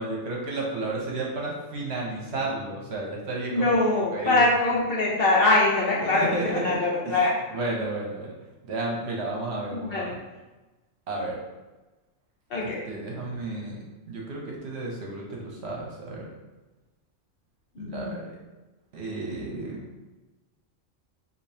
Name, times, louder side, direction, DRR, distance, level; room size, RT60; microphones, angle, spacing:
voice 1, 0.0-3.8 4.1-4.4 6.1-6.8 7.1-7.2 7.5-8.3 8.7-10.2 11.1-11.4 12.6-16.3 17.8-18.2 18.9-19.8, right 2 dB, 60° right, -2 dB, 1.0 m, -32 dB
voice 2, 3.5-7.3 9.7-10.1 12.5-12.8 17.8-18.2, left 2 dB, 55° left, -4 dB, 0.9 m, -23 dB
5.0 x 2.6 x 2.8 m, 1.1 s
omnidirectional pair, 1.3 m